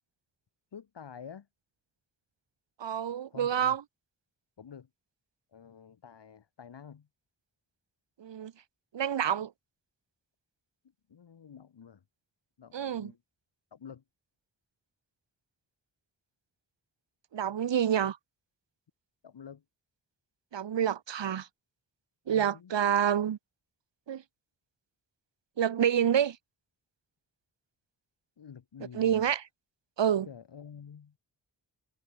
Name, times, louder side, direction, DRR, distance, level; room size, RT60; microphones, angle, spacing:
voice 1, 0.7-1.5 3.3-3.8 4.6-4.9 5.5-7.1 11.1-12.0 12.6-13.2 13.7-14.0 19.2-19.6 22.3-22.7 28.4-29.2 30.3-31.2, left 7 dB, 70° left, 2.6 m, -48 dB
voice 2, 2.8-3.8 8.2-8.5 8.9-9.5 12.7-13.1 17.3-18.2 20.5-21.5 22.3-23.4 24.1-24.2 25.6-26.4 28.9-29.4 30.0-30.3, right 9 dB, 80° right, 1.5 m, -28 dB
wide cardioid pair, 80°, 43 cm